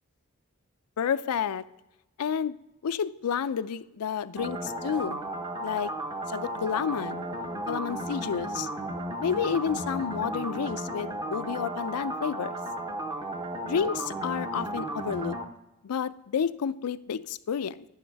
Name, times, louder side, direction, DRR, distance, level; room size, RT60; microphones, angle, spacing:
voice 1, 1.0-1.6 2.2-2.6 2.8-5.2 5.6-5.9 6.3-7.2 7.7-8.7 9.2-12.6 13.6-15.4 15.8-17.8, left 7 dB, 85° left, 14 dB, 0.4 m, -30 dB
sound 1, 4.4-15.5, right 1 dB, 20° right, 0.7 m, -34 dB
10.5 x 10.0 x 3.4 m, 0.94 s
head